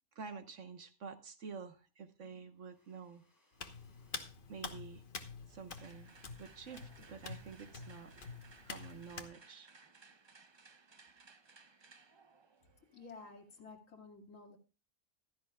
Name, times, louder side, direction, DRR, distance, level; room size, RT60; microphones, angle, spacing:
voice 1, 0.1-3.2 4.5-5.0 5.5-8.3 8.7-9.7, right 5 dB, 60° right, 9 dB, 1.4 m, -49 dB
sound 1, 2.5-4.3 6.4-8.3, right 1 dB, 15° left, 4.8 m, -69 dB
Hands, 3.6-9.3, left 4 dB, 40° left, 1.2 m, -48 dB
sound 2, 5.8-13.7, right 4 dB, 40° right, 0.4 m, -62 dB
voice 2, 12.9-14.6, left 4 dB, 65° left, 2 dB, 2.7 m, -53 dB
15.0 x 13.0 x 2.3 m, 0.32 s
omnidirectional pair, 1.5 m